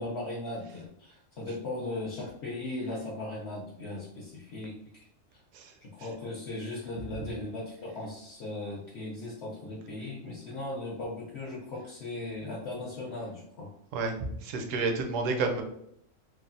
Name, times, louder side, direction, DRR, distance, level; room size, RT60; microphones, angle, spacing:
voice 1, 0.0-5.1 5.3-5.4 5.8-13.7, left 2 dB, 60° left, -5 dB, 0.8 m, -38 dB
voice 2, 14.4-15.6, right 3 dB, 75° right, 4 dB, 0.9 m, -30 dB
3.2 x 2.0 x 2.4 m, 0.71 s
omnidirectional pair, 1.4 m